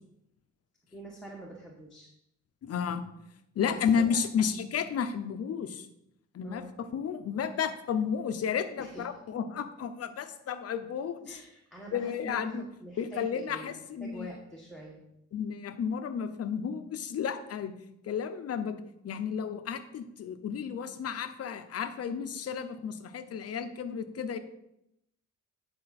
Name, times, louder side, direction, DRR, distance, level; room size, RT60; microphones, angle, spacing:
voice 1, 0.9-2.1 3.6-4.2 6.4-6.7 8.8-9.0 11.2-15.0, right 2 dB, ahead, -3 dB, 1.4 m, -45 dB
voice 2, 2.6-3.0 3.6-5.9 6.3-6.6 6.9-11.4 11.9-12.7 13.0-14.3 15.3-17.7 18.0-24.4, left 7 dB, 55° left, 10 dB, 0.8 m, -32 dB
9.9 x 4.6 x 4.2 m, 0.81 s
cardioid pair, 90°, 30 cm